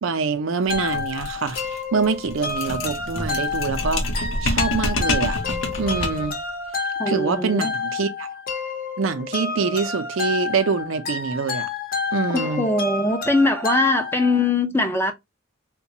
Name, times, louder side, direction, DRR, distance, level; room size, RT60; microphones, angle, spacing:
voice 1, 0.0-4.0 4.4-5.4 5.8-6.4 7.1-8.3 9.0-11.7 12.1-12.7, right 5 dB, 85° right, 0.5 m, -25 dB
sound 1, 0.7-6.4, left 2 dB, 90° left, 0.7 m, -27 dB
sound 2, 0.7-14.5, left 4 dB, 50° left, 0.8 m, -29 dB
voice 2, 7.0-7.7 12.3-15.1, left 2 dB, 10° left, 0.4 m, -21 dB
3.9 x 2.2 x 2.7 m
head